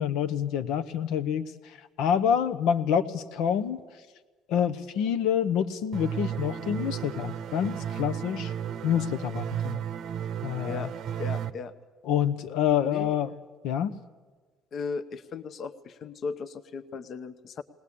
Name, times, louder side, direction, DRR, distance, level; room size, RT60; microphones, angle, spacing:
voice 1, 0.0-1.5 2.0-3.8 4.5-8.5 8.8-9.8 10.4-10.8 12.1-13.3 13.6-13.9, left 8 dB, 80° left, 11 dB, 0.9 m, -27 dB
sound 1, 5.9-11.5, right 9 dB, 55° right, 0.7 m, -34 dB
voice 2, 11.2-11.7 12.8-13.2 14.7-17.6, left 5 dB, 40° left, 11 dB, 0.7 m, -36 dB
20.0 x 19.0 x 8.5 m, 1.4 s
cardioid pair, 150°, 0 cm